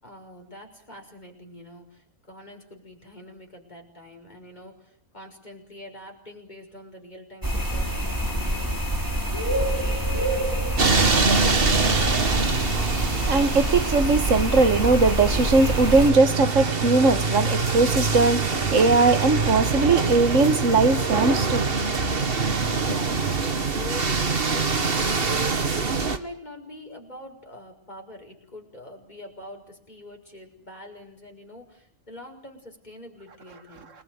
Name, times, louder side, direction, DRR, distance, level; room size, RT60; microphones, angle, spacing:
voice 1, 0.0-8.7 9.3-12.5 22.9-33.9, left 1 dB, 30° left, 6.2 m, -44 dB
sound 1, 7.4-16.1, right 1 dB, 15° right, 3.8 m, -26 dB
sound 2, 10.8-26.2, right 4 dB, 40° right, 1.7 m, -24 dB
voice 2, 13.2-22.1, right 3 dB, 60° right, 1.9 m, -20 dB
29.0 x 20.5 x 9.5 m
omnidirectional pair, 1.5 m